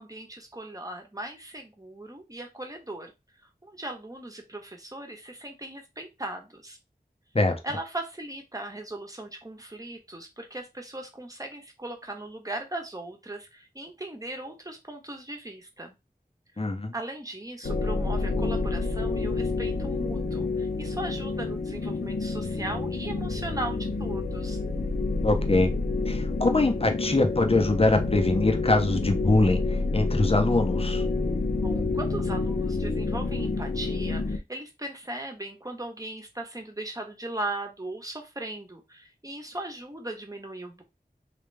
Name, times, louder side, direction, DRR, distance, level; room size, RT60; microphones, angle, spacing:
voice 1, 0.0-3.1 3.6-6.8 7.6-15.9 16.9-24.6 31.6-40.8, right 1 dB, 20° right, 3 dB, 1.1 m, -38 dB
voice 2, 16.6-16.9 25.2-25.7 26.1-29.6 29.9-31.1, left 2 dB, 35° left, 5 dB, 0.8 m, -23 dB
sound 1, 17.6-34.4, left 3 dB, 75° left, 0.7 m, -28 dB
3.4 x 2.9 x 3.4 m, 0.24 s
wide cardioid pair, 50°, 16 cm